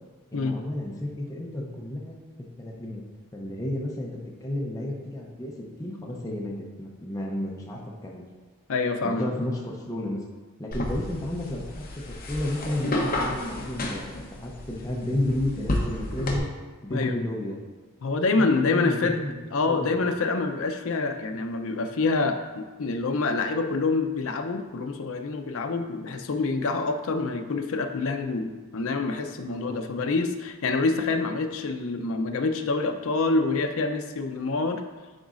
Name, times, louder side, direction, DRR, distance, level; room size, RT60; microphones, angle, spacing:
voice 1, 0.3-2.2 2.6-3.0 3.3-4.1 4.4-8.2 9.0-10.2 10.6-11.6 12.1-16.5 16.8-17.6 18.4-19.4 19.6-20.0 29.6-29.8, left 1 dB, 15° left, -3 dB, 0.6 m, -32 dB
voice 2, 8.7-9.3 16.9-17.2 18.0-19.2 19.5-34.8, left 3 dB, 60° left, 5 dB, 0.5 m, -26 dB
sound 1, 10.7-16.4, left 1 dB, 40° left, 0.8 m, -31 dB
10.0 x 4.0 x 2.5 m, 1.3 s
head